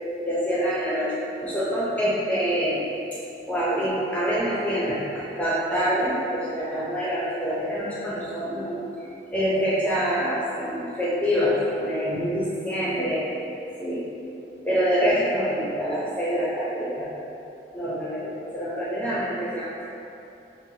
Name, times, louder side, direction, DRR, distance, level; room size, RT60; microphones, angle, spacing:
voice 1, 0.2-2.8 3.5-8.8 9.3-13.3 13.8-14.0 14.6-17.1 17.7-19.8, equal, 10° left, -9 dB, 0.7 m, -26 dB
5.6 x 2.3 x 2.8 m, 2.7 s
head